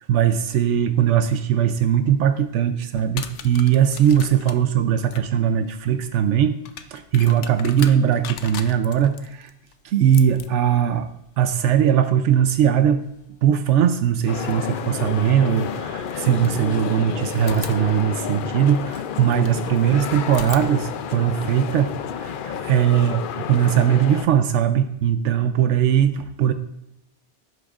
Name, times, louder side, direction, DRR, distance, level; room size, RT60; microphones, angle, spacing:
voice 1, 0.1-6.6 6.9-9.5 9.8-11.1 11.4-13.0 13.4-26.5, right 9 dB, 85° right, 8 dB, 0.9 m, -20 dB
sound 1, 2.9-13.7 15.2-15.3 16.0-17.0 17.4-19.7 20.2-22.3, left 8 dB, 85° left, 1.0 m, -41 dB
sound 2, 14.3-24.3, left 8 dB, 60° left, 0.6 m, -30 dB
Liquid, 16.2-21.9, equal, 10° left, 3.1 m, -50 dB
16.0 x 7.8 x 2.4 m, 0.81 s
omnidirectional pair, 1.2 m